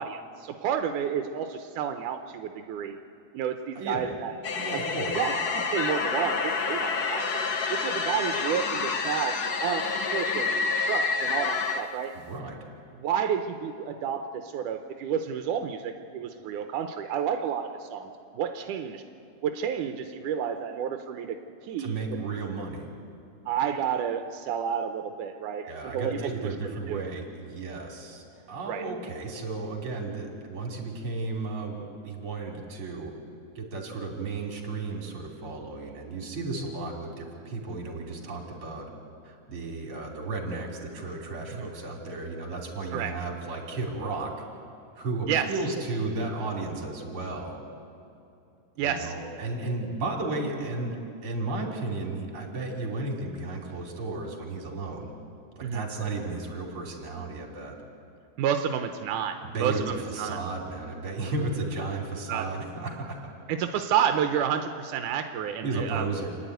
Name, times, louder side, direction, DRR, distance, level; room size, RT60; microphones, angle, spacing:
voice 1, 0.0-3.0 3.3-4.3 4.7-4.8 5.2-7.3 7.7-9.4 9.6-12.1 12.9-19.0 19.4-21.4 21.6-21.9 23.5-26.3 26.9-27.1 28.7-28.8 41.5-41.7 42.9-43.1 45.3-45.5 48.8-49.1 55.6-55.8 58.4-60.4 62.3-62.5 63.5-66.1, right 8 dB, 85° right, 6 dB, 2.3 m, -30 dB
voice 2, 3.8-4.1 4.5-5.2 12.1-12.6 21.8-22.9 25.6-33.1 33.6-38.9 39.2-44.3 45.0-47.6 48.8-50.9 51.2-55.1 55.5-57.7 59.4-63.3 65.6-66.3, right 3 dB, 45° right, 1 dB, 3.6 m, -34 dB
sound 1, 4.4-11.8, left 4 dB, 85° left, 0.8 m, -28 dB
28.5 x 10.5 x 9.2 m, 2.6 s
omnidirectional pair, 3.5 m